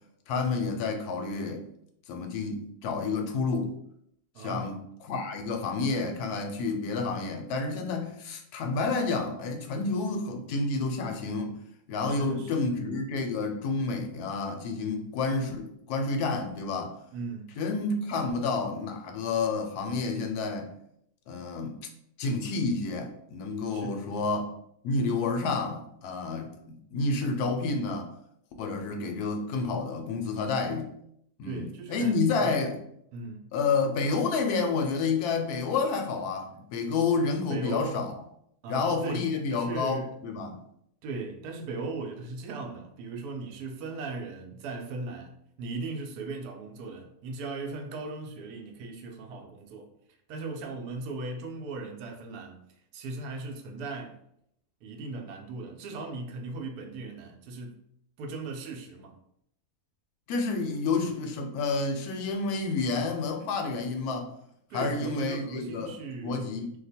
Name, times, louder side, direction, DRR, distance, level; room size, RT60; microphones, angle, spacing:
voice 1, 0.3-1.6 2.1-3.7 4.4-11.5 11.9-17.0 17.6-20.7 21.3-21.7 22.2-24.5 24.8-28.1 28.6-30.9 31.4-32.8 33.5-38.1 38.7-40.6 60.3-64.3 64.7-65.9 66.2-66.7, left 4 dB, 85° left, 1.1 m, -29 dB
voice 2, 4.3-4.8 12.1-12.7 17.1-17.5 23.7-24.3 31.4-32.6 33.1-33.5 37.5-38.0 38.6-40.1 41.0-49.9 50.3-52.6 52.9-54.2 54.8-57.8 58.2-59.2 64.7-66.5, right 3 dB, 85° right, 1.1 m, -38 dB
2.8 x 2.1 x 4.1 m
omnidirectional pair, 1.6 m